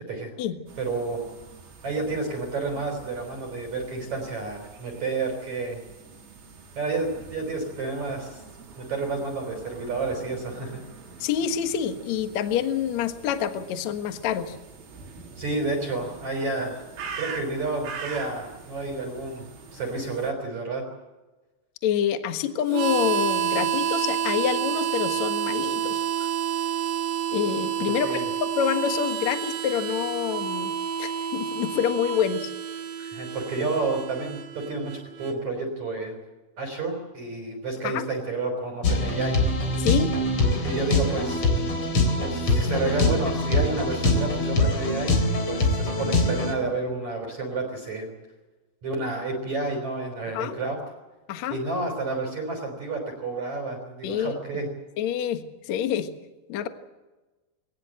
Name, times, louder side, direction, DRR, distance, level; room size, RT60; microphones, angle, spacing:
sound 1, 0.7-20.3, right 5 dB, 85° right, 6.0 m, -44 dB
voice 1, 0.8-1.2 1.8-5.8 6.8-8.4 8.8-10.8 15.4-16.8 17.2-19.4 19.7-20.8 28.0-28.2 33.0-36.2 36.6-39.4 40.6-41.5 41.8-45.2 45.5-48.1 48.8-50.8 51.5-54.7, right 3 dB, 40° right, 2 dB, 4.6 m, -30 dB
voice 2, 11.2-14.6 21.8-26.3 27.3-30.7 31.0-32.5 37.8-38.1 39.8-40.1 50.3-50.6 51.3-51.6 54.0-54.4 55.0-56.1 56.5-56.7, left 9 dB, 70° left, 8 dB, 1.7 m, -27 dB
Harmonica, 22.7-35.3, right 8 dB, 60° right, 4.0 m, -29 dB
sound 2, 38.8-46.5, left 2 dB, 30° left, 4.0 m, -23 dB
21.5 x 19.0 x 7.8 m, 1.2 s
omnidirectional pair, 5.5 m